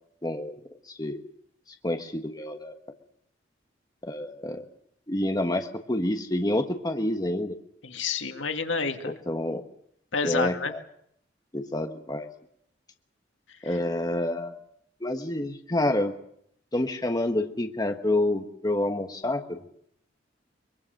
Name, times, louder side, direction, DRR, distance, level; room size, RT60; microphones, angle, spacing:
voice 1, 0.2-0.6 1.0-1.2 1.8-2.7 4.0-4.7 5.1-7.6 9.1-9.6 10.2-10.8 11.5-12.3 13.6-14.5 15.0-16.1 16.7-19.6, left 1 dB, 20° left, 5 dB, 1.3 m, -28 dB
voice 2, 7.8-9.1 10.1-10.8 13.6-13.8, left 4 dB, 85° left, 6 dB, 2.1 m, -29 dB
23.5 x 22.0 x 6.6 m, 0.70 s
head